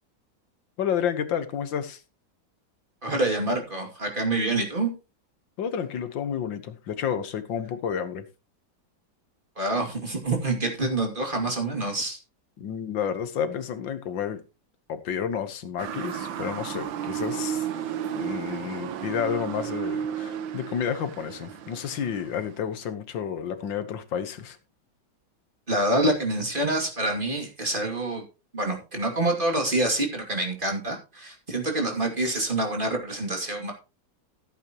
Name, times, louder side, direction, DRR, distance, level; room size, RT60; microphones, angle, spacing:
voice 1, 0.8-2.0 5.6-8.3 12.6-14.4 14.9-17.7 18.1-24.6, left 8 dB, 70° left, 1.9 m, -30 dB
voice 2, 3.0-4.9 9.6-12.2 25.7-28.2 28.5-33.7, right 2 dB, 25° right, 2.6 m, -26 dB
Motor vehicle (road) / Siren, 15.8-22.5, right 9 dB, 75° right, 1.6 m, -33 dB
15.0 x 8.5 x 3.0 m
omnidirectional pair, 2.2 m